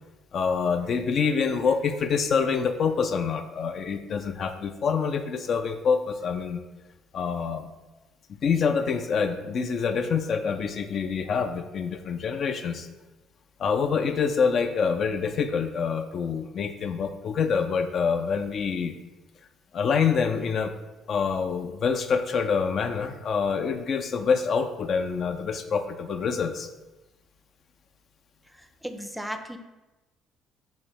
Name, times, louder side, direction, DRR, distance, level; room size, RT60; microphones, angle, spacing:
voice 1, 0.3-6.6 7.1-7.7 8.3-12.9 13.6-19.0 19.7-20.7 21.1-26.7, left 6 dB, 55° left, 7 dB, 0.3 m, -26 dB
voice 2, 28.8-29.6, equal, 5° right, 7 dB, 0.4 m, -34 dB
3.3 x 3.1 x 4.7 m, 1.1 s
supercardioid pair, 65°, 0 cm